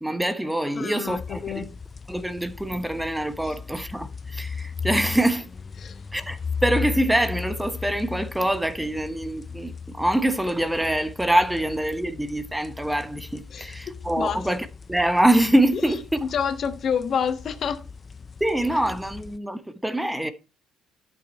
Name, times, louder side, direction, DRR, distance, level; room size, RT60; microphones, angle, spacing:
voice 1, 0.0-1.7 2.1-5.5 6.1-16.0 18.4-20.3, right 1 dB, 5° right, 1.1 m, -24 dB
voice 2, 0.7-1.7 3.4-3.5 5.8-6.0 13.5-14.4 16.2-17.8, left 7 dB, 55° left, 1.3 m, -28 dB
sound 1, 1.1-19.4, left 5 dB, 35° left, 0.4 m, -37 dB
11.0 x 6.1 x 4.4 m
hypercardioid pair, 55°, 0 cm